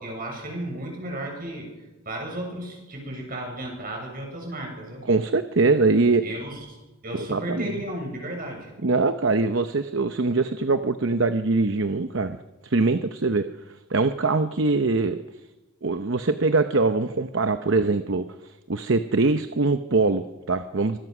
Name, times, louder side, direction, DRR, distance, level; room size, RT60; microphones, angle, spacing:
voice 1, 0.0-1.7 2.1-5.0 6.2-6.8 7.0-8.7, right 1 dB, 40° right, 1 dB, 7.4 m, -34 dB
voice 2, 5.1-6.2 7.2-7.7 8.8-12.4 12.6-13.5 13.9-15.2 15.8-21.0, right 3 dB, 55° right, 9 dB, 0.8 m, -23 dB
25.0 x 20.5 x 6.2 m, 1.1 s
head